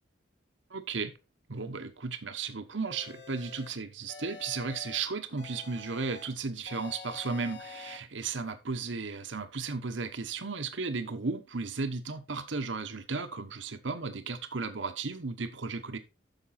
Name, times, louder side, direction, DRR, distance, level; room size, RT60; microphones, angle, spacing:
voice 1, 0.7-1.1 1.5-16.0, right 4 dB, 75° right, 1.1 m, -35 dB
sound 1, 2.9-3.7 4.1-5.0 5.4-6.3 6.7-8.0, left 4 dB, 65° left, 2.1 m, -46 dB
9.2 x 6.6 x 4.2 m
head